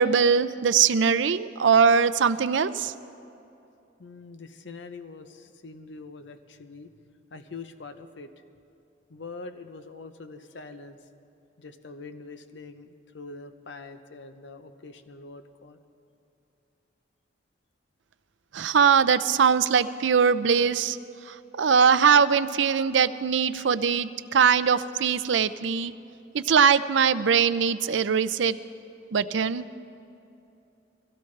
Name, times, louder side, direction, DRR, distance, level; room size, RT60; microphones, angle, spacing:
voice 1, 0.0-2.9 18.5-21.0 21.3-25.9 26.3-28.6 29.1-29.6, right 6 dB, 75° right, 14 dB, 0.5 m, -21 dB
voice 2, 4.0-6.9 7.3-8.3 9.1-11.1 11.6-15.8, left 3 dB, 70° left, 8 dB, 0.7 m, -44 dB
22.5 x 16.5 x 3.3 m, 2.8 s
head